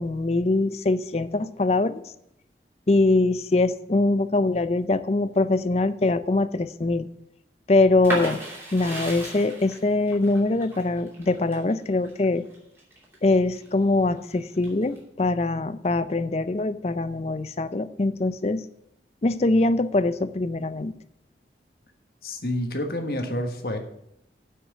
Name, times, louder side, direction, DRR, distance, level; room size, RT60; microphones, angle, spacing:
voice 1, 0.0-2.0 2.9-7.1 7.7-8.4 8.7-12.4 13.2-18.6 19.2-20.9, left 2 dB, 35° left, 14 dB, 0.5 m, -23 dB
sound 1, 8.0-13.7 14.1-15.0, right 1 dB, 15° right, 2.8 m, -35 dB
voice 2, 22.2-23.8, left 1 dB, 60° left, 5 dB, 1.4 m, -28 dB
8.2 x 6.0 x 7.4 m, 0.78 s
head